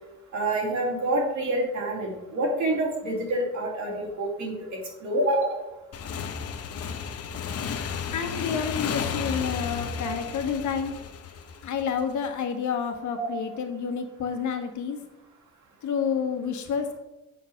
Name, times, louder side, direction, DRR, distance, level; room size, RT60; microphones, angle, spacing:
voice 1, 0.3-5.6 9.9-10.2 13.2-13.3, right 1 dB, 70° right, -1 dB, 2.9 m, -27 dB
Motorcycle / Engine, 5.9-12.3, left 6 dB, 55° left, 0.8 m, -33 dB
voice 2, 8.1-10.9 11.6-15.0 15.8-17.0, left 7 dB, 75° left, 5 dB, 1.4 m, -29 dB
7.6 x 4.9 x 5.8 m, 0.96 s
cardioid pair, 90°, 30 cm